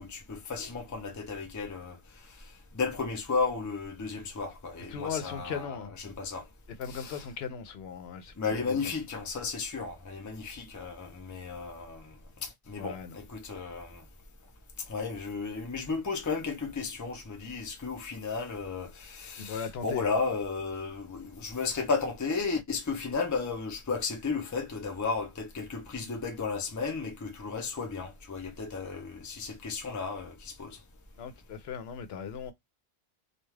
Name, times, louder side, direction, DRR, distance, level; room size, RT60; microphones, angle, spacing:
voice 1, 0.0-2.0 2.7-5.8 6.0-6.5 6.9-7.2 8.4-14.0 14.8-30.8, left 4 dB, 20° left, 0.5 m, -34 dB
voice 2, 4.9-5.9 6.7-8.8 12.8-13.2 19.4-20.1 31.2-32.5, left 7 dB, 80° left, 0.8 m, -38 dB
2.4 x 2.3 x 3.1 m
omnidirectional pair, 1.1 m